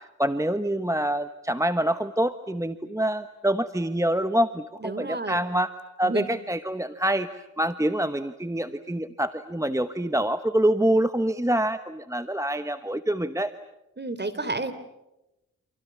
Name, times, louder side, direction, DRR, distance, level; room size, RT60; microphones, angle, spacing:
voice 1, 0.0-5.7 6.0-13.5, right 1 dB, 10° right, 10 dB, 1.2 m, -26 dB
voice 2, 4.8-5.4 6.0-6.3 14.0-14.7, right 2 dB, 35° right, 12 dB, 3.4 m, -30 dB
30.0 x 28.0 x 7.0 m, 0.92 s
cardioid pair, 60°, 31 cm